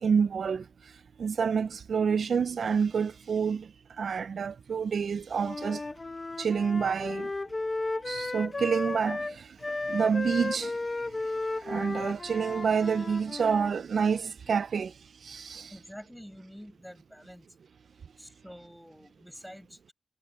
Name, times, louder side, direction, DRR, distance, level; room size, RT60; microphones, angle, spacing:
voice 1, 0.0-0.7 1.2-3.7 4.0-5.8 6.4-7.3 8.1-10.8 11.6-14.9 15.2-15.7, right 6 dB, 75° right, 0.4 m, -28 dB
Wind instrument woodwind instrument, 5.4-13.7, left 2 dB, 35° left, 0.9 m, -34 dB
voice 2, 15.7-17.6 18.2-19.9, equal, ahead, 5.3 m, -48 dB
cardioid pair, 60°, 0 cm